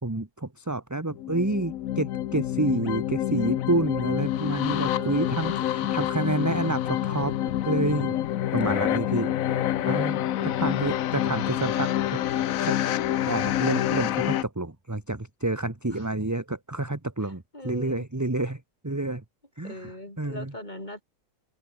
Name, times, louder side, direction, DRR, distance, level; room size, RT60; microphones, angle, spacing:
voice 1, 0.0-7.3 7.6-8.2 8.5-9.3 9.8-12.8 13.3-19.2 19.6-19.9 20.2-20.5, right 2 dB, 10° right, 1.4 m, -29 dB
sound 1, 1.1-14.4, left 12 dB, 60° left, 1.0 m, -27 dB
voice 2, 4.9-5.7 8.6-8.9 9.4-10.0 10.4-10.9 11.3-11.6 15.9-16.1 17.2-18.0 19.6-21.0, left 1 dB, 25° left, 7.1 m, -41 dB
open air
omnidirectional pair, 1.9 m